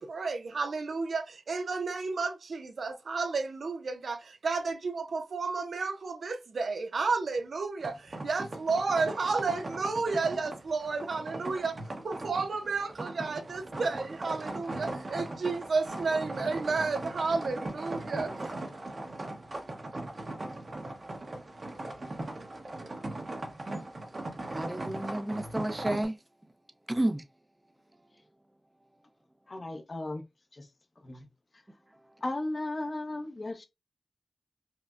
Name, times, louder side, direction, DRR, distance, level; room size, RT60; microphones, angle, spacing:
voice 1, 0.0-11.8 12.0-18.5, right 4 dB, 85° right, 0.5 m, -32 dB
sound 1, 7.8-26.0, right 2 dB, 55° right, 0.9 m, -39 dB
voice 2, 24.5-26.2 26.9-27.2, right 1 dB, 20° right, 0.5 m, -31 dB
voice 3, 29.5-30.2 30.5-30.7 31.0-31.2 31.5-31.6 32.2-33.7, left 2 dB, 45° left, 0.7 m, -35 dB
5.5 x 2.1 x 2.4 m
wide cardioid pair, 65°, 0 cm